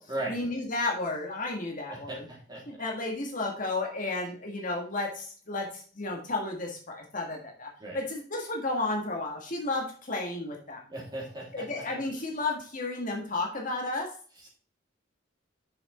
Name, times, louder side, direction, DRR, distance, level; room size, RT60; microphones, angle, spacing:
voice 1, 0.3-2.3 2.7-10.8 11.5-14.1, left 2 dB, 45° left, 1 dB, 1.7 m, -33 dB
voice 2, 1.9-2.6 7.8-8.0 10.9-11.6 14.4-14.5, right 1 dB, 20° right, -4 dB, 3.4 m, -37 dB
6.9 x 6.2 x 4.3 m, 0.43 s
head